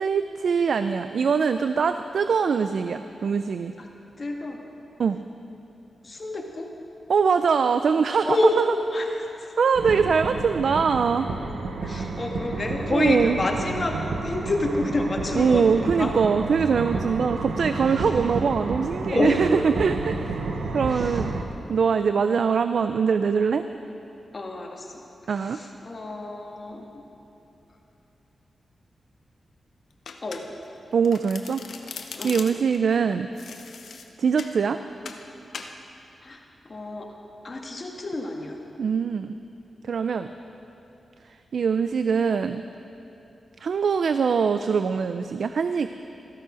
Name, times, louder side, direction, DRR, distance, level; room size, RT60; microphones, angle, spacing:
voice 1, 0.0-3.7 5.0-5.2 7.1-8.4 9.6-11.3 12.9-13.4 15.4-20.3 20.7-21.3 21.7-23.6 25.3-25.6 30.9-31.6 32.2-33.3 34.2-34.8 38.8-39.3 39.9-40.3 41.5-42.6 43.6-45.9, right 6 dB, 70° right, 10 dB, 0.4 m, -23 dB
voice 2, 4.2-4.6 6.0-6.7 8.3-8.6 8.9-9.1 11.8-16.1 17.9-18.0 19.1-19.7 20.9-21.1 24.3-24.9 25.5-26.8 30.2-30.4 32.1-32.4 36.2-36.4 36.7-37.1 37.4-38.6, left 2 dB, 40° left, 1 dB, 1.7 m, -28 dB
sound 1, 9.7-21.4, right 3 dB, 90° right, 1.1 m, -31 dB
Domestic sounds home sounds, 30.1-30.7 31.0-32.8 33.4-34.6 35.1-35.3 35.5-35.8, left 5 dB, 80° left, 0.8 m, -39 dB
14.0 x 12.5 x 5.1 m, 2.8 s
wide cardioid pair, 90°, 0 cm